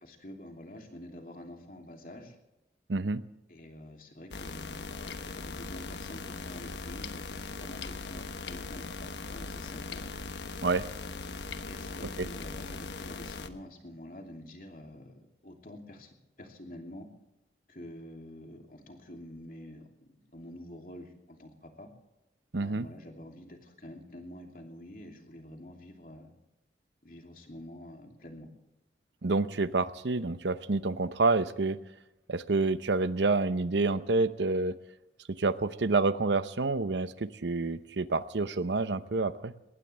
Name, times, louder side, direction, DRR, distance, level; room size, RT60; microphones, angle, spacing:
voice 1, 0.0-2.4 3.5-10.0 11.6-17.1 17.7-21.9 22.5-26.3 27.0-28.5, left 1 dB, 50° left, 2 dB, 2.9 m, -47 dB
voice 2, 2.9-3.2 10.6-10.8 12.2-12.3 22.5-22.9 29.2-31.8 32.3-34.8 35.3-39.5, right 3 dB, 85° right, 13 dB, 0.8 m, -28 dB
sound 1, 4.3-13.5, left 3 dB, 85° left, 1.2 m, -40 dB
21.0 x 18.0 x 3.4 m, 0.97 s
head